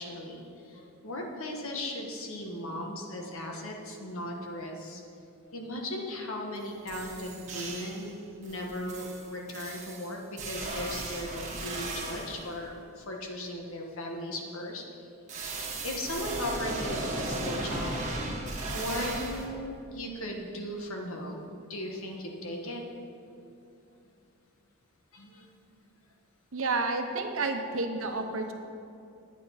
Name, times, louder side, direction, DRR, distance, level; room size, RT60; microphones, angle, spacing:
voice 1, 0.0-5.0 5.5-14.8 15.6-18.0 18.7-22.8 25.1-25.5 28.3-28.4, left 1 dB, 70° left, 1 dB, 1.5 m, -37 dB
sound 1, 6.5-6.6 6.9-8.1 8.4-12.5 15.3-19.5, right 2 dB, 35° right, 1.6 m, -36 dB
voice 2, 26.5-28.5, right 3 dB, 65° right, 4 dB, 1.0 m, -30 dB
9.7 x 9.0 x 5.8 m, 2.6 s
head